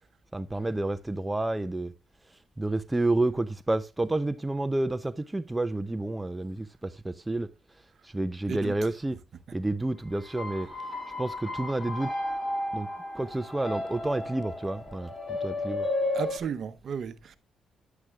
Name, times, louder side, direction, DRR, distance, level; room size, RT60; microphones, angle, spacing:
voice 1, 0.3-1.9 2.6-7.5 8.0-9.2 9.5-10.7 11.2-12.1 12.7-12.9 13.1-15.9, right 2 dB, 15° right, 0.5 m, -30 dB
sound 1, 10.2-16.4, left 2 dB, 30° left, 2.2 m, -33 dB
voice 2, 16.1-17.4, right 7 dB, 55° right, 0.8 m, -34 dB
9.9 x 9.5 x 2.3 m
cardioid pair, 90°, 0 cm